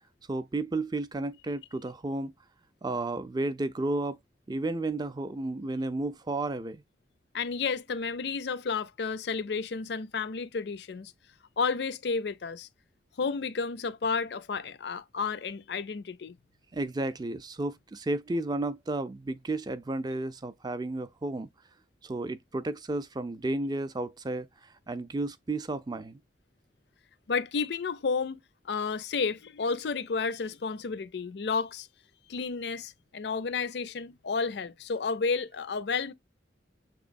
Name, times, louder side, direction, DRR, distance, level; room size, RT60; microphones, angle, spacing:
voice 1, 0.3-2.3 2.8-4.2 4.5-6.8 16.7-21.5 22.0-26.2, right 2 dB, 20° right, 0.4 m, -32 dB
voice 2, 7.3-11.1 11.6-12.7 13.2-16.4 27.3-28.4 28.6-31.9 32.3-36.1, left 5 dB, 65° left, 0.5 m, -31 dB
6.7 x 3.0 x 2.5 m
head